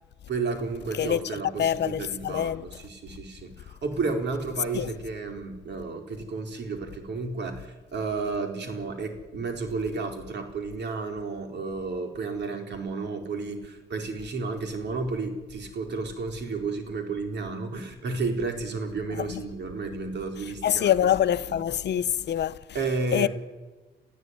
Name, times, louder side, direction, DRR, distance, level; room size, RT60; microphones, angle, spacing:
voice 1, 0.3-20.9 21.4-21.6 22.7-23.3, right 4 dB, 60° right, 4.4 m, -32 dB
voice 2, 1.6-2.6 4.7-4.9 19.2-19.4 20.6-22.6 23.1-23.3, left 10 dB, 60° left, 0.9 m, -25 dB
28.0 x 15.0 x 9.6 m
cardioid pair, 90°, 20 cm